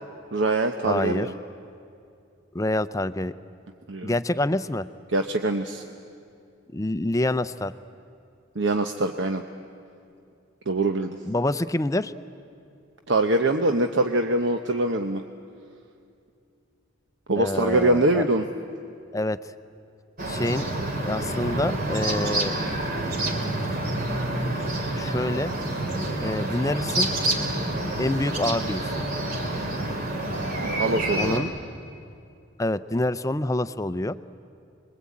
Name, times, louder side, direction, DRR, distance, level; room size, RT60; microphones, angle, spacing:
voice 1, 0.3-1.3 3.9-4.1 5.1-5.8 8.6-9.4 10.7-11.2 13.1-15.2 17.3-18.5 30.6-31.5, right 2 dB, 70° right, 5 dB, 0.9 m, -23 dB
voice 2, 0.8-1.3 2.5-3.3 4.0-4.9 6.7-7.7 11.2-12.1 17.4-18.3 19.1-19.4 20.3-20.7 21.1-22.5 24.9-25.5 26.2-27.1 28.0-29.0 31.2-31.5 32.6-34.2, left 1 dB, 15° left, 13 dB, 0.5 m, -26 dB
sound 1, 20.2-31.4, right 1 dB, 50° right, 3.1 m, -28 dB
26.0 x 21.5 x 8.5 m, 2.5 s
head